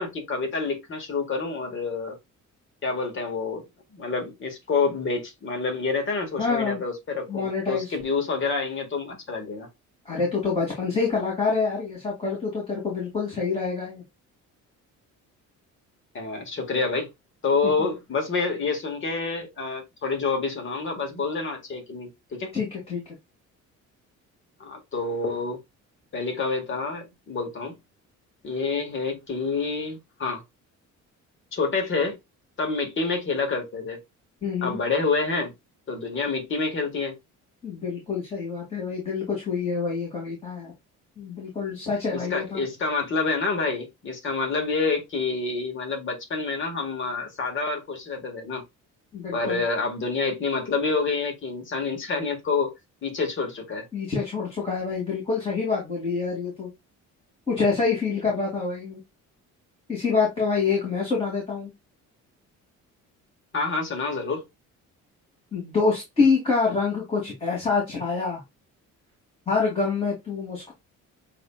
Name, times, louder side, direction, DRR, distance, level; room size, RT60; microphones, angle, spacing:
voice 1, 0.0-2.2 2.8-3.6 3.9-9.7 16.1-17.1 17.4-22.5 24.6-25.6 26.1-27.8 28.4-30.4 31.5-32.2 32.6-34.0 34.6-35.5 35.9-37.2 42.1-48.6 49.3-52.7 53.0-53.9 63.5-64.4, left 4 dB, 40° left, 1.8 m, -28 dB
voice 2, 6.4-6.8 7.3-7.9 10.1-14.0 22.5-23.0 34.4-34.8 37.6-40.7 41.2-42.6 49.1-49.6 53.9-56.7 57.5-59.0 59.9-61.7 65.5-68.4 69.5-70.7, left 4 dB, 20° left, 2.5 m, -26 dB
7.7 x 3.0 x 2.3 m
cardioid pair, 160°, 31 cm